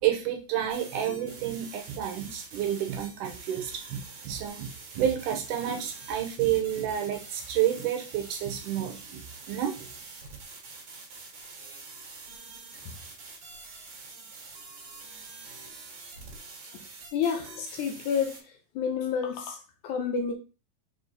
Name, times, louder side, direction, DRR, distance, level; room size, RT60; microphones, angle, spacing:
voice 1, 0.0-4.7 5.0-9.9, right 10 dB, 75° right, 2.3 m, -30 dB
sound 1, 0.7-18.4, right 4 dB, 50° right, 2.4 m, -46 dB
voice 2, 17.1-20.3, left 6 dB, 70° left, 2.1 m, -30 dB
5.3 x 4.4 x 4.0 m
omnidirectional pair, 3.9 m